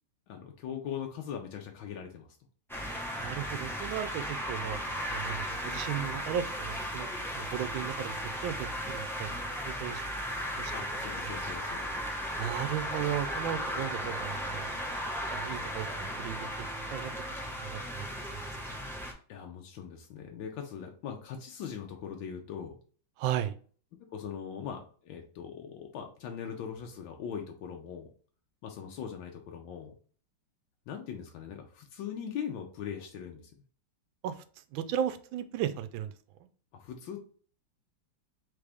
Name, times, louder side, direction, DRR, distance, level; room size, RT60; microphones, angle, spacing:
voice 1, 0.3-2.4 10.7-12.0 19.3-22.7 24.1-28.1 28.6-29.9 30.9-33.5 36.7-37.2, left 8 dB, 85° left, 2 dB, 1.5 m, -40 dB
sound 1, 2.7-19.1, equal, 5° left, 0.4 m, -36 dB
voice 2, 3.2-4.8 5.1-8.2 8.4-8.5 8.9-10.0 10.6-10.7 12.4-14.7 15.3-16.7 16.9-17.1 17.6-18.1 18.3-18.4 23.2-23.5 34.2-34.4 34.7-36.1, right 10 dB, 90° right, 12 dB, 1.3 m, -35 dB
3.9 x 3.4 x 3.4 m, 0.43 s
omnidirectional pair, 2.1 m